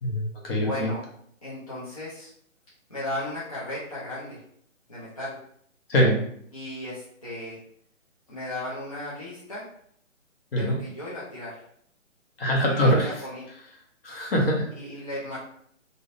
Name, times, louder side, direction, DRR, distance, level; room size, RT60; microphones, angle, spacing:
voice 1, 0.0-0.9 5.9-6.2 10.5-10.8 12.4-13.1 14.0-14.7, equal, 45° left, -1 dB, 0.8 m, -23 dB
voice 2, 0.6-1.0 1.4-2.3 2.9-4.4 4.9-5.3 6.5-7.6 8.3-9.7 10.5-11.6 12.6-13.5 14.7-15.4, left 1 dB, 30° left, -9 dB, 0.4 m, -35 dB
2.5 x 2.1 x 2.4 m, 0.66 s
hypercardioid pair, 155°, 40 cm